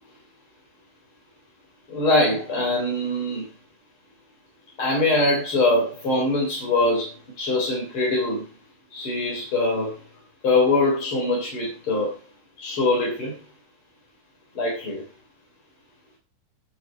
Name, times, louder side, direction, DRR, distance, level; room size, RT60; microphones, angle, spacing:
voice 1, 1.9-3.4 4.8-8.4 8.9-10.0 10.4-12.2 12.6-13.4 14.5-15.0, left 2 dB, 45° left, -3 dB, 4.4 m, -23 dB
11.5 x 11.0 x 4.5 m, 0.31 s
omnidirectional pair, 3.4 m